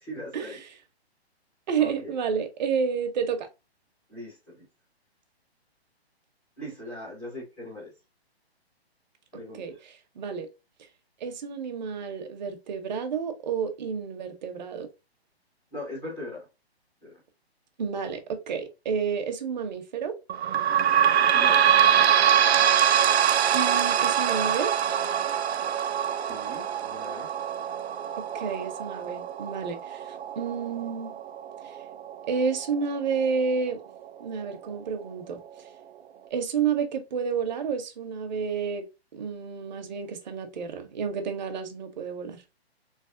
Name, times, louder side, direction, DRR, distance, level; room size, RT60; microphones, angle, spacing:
voice 1, 0.1-0.6 1.8-2.1 4.1-4.6 6.6-7.9 9.3-9.6 15.7-16.5 17.0-17.1 21.3-22.1 26.1-27.3, left 1 dB, 5° left, 0.4 m, -40 dB
voice 2, 1.7-3.5 9.5-10.5 11.2-14.9 17.8-20.2 23.5-24.7 28.1-31.2 31.6-31.7 32.3-33.8 34.2-35.4 36.3-38.9 39.1-42.6, right 6 dB, 45° right, 0.8 m, -30 dB
sound 1, 20.3-33.5 34.0-34.1 34.4-34.5 35.3-35.4, right 9 dB, 80° right, 0.5 m, -24 dB
3.3 x 3.1 x 2.5 m
hypercardioid pair, 155°, 32 cm